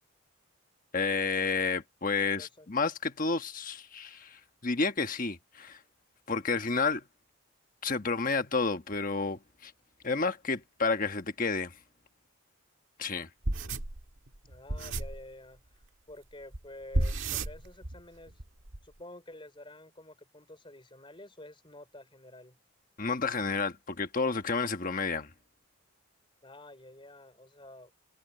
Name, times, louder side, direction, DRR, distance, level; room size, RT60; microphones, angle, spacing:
voice 1, 0.9-5.8 6.3-7.0 7.8-9.7 10.0-11.7 13.0-13.3 23.0-25.3, left 4 dB, 40° left, 1.3 m, -30 dB
voice 2, 2.2-2.7 14.4-18.4 18.8-22.6 26.4-27.9, left 1 dB, 25° left, 4.2 m, -50 dB
sound 1, 13.4-15.2 16.5-16.6 16.9-18.0 18.3-18.8, right 2 dB, 65° right, 1.9 m, -32 dB
head